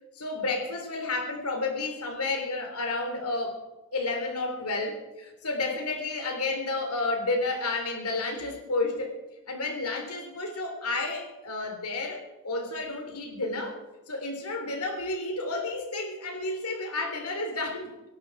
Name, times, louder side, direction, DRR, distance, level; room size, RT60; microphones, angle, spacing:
voice 1, 0.2-3.6 3.9-9.1 9.5-13.8 14.1-17.9, left 3 dB, 80° left, 4 dB, 3.5 m, -31 dB
25.5 x 11.5 x 4.7 m, 1.1 s
head